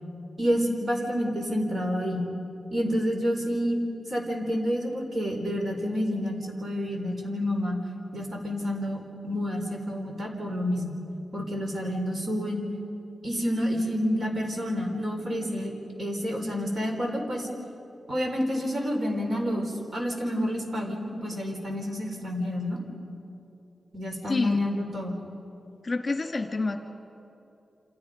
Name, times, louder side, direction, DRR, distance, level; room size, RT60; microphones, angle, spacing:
voice 1, 0.4-2.2 2.7-3.8 4.1-7.8 8.1-11.0 11.3-12.6 13.2-15.7 16.0-17.5 18.1-22.8 23.9-25.1, equal, 45° right, 2 dB, 4.7 m, -29 dB
voice 2, 24.3-24.6 25.8-26.8, left 3 dB, 35° left, 4 dB, 2.3 m, -28 dB
28.5 x 27.5 x 5.3 m, 2.8 s
cardioid pair, 85°, 0 cm